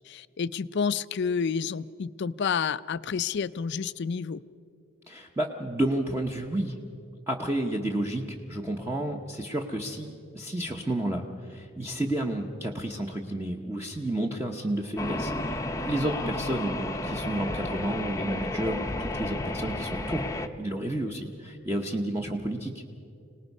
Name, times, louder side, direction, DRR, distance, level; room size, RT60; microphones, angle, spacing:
voice 1, 0.1-4.4, left 6 dB, 55° left, 16 dB, 0.4 m, -29 dB
voice 2, 5.1-6.8 7.3-22.7, right 1 dB, 10° right, 1 dB, 0.8 m, -31 dB
sound 1, 15.0-20.5, left 1 dB, 15° left, 0.7 m, -32 dB
25.5 x 18.5 x 5.4 m, 2.5 s
head